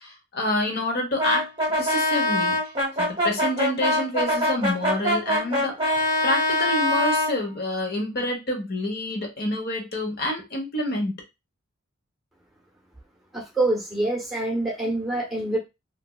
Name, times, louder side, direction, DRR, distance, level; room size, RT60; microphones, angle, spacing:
voice 1, 0.0-1.4 1.8-2.6 3.0-11.2, left 1 dB, 50° left, 1 dB, 1.1 m, -28 dB
Brass instrument, 1.2-7.4, left 1 dB, 25° right, 1.0 m, -23 dB
voice 2, 13.3-15.6, right 2 dB, ahead, -1 dB, 1.0 m, -25 dB
3.3 x 2.7 x 2.4 m, 0.23 s
head